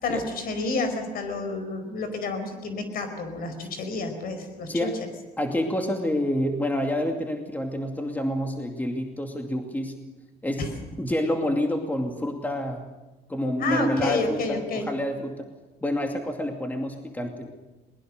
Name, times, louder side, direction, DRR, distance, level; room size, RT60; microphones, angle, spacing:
voice 1, 0.0-4.9 10.6-10.7 13.6-14.9, left 3 dB, 60° left, 8 dB, 4.8 m, -29 dB
voice 2, 5.4-9.9 10.4-12.8 13.3-15.5 15.8-17.5, left 1 dB, 10° left, 3 dB, 2.4 m, -28 dB
21.5 x 20.5 x 6.6 m, 1.1 s
cardioid pair, 110°, 17 cm